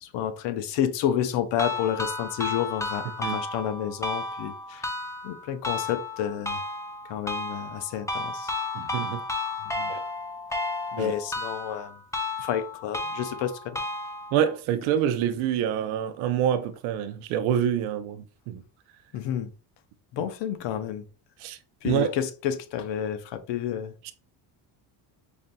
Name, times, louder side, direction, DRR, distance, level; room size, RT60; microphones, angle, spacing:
voice 1, 0.0-4.9 5.2-6.6 7.1-8.5 9.7-9.9 10.9-12.0 12.4-13.8 19.1-19.5 20.1-21.0 21.8-23.9, left 9 dB, 65° left, 0.7 m, -30 dB
creepy piano, 1.6-14.6, left 2 dB, 5° left, 0.6 m, -33 dB
voice 2, 8.7-9.2 9.9-10.0 11.0-11.1 14.3-18.6 20.2-20.3 21.4-21.6 21.8-22.1 24.0-24.1, right 9 dB, 85° right, 0.6 m, -26 dB
5.0 x 2.6 x 2.2 m
supercardioid pair, 90°, 47 cm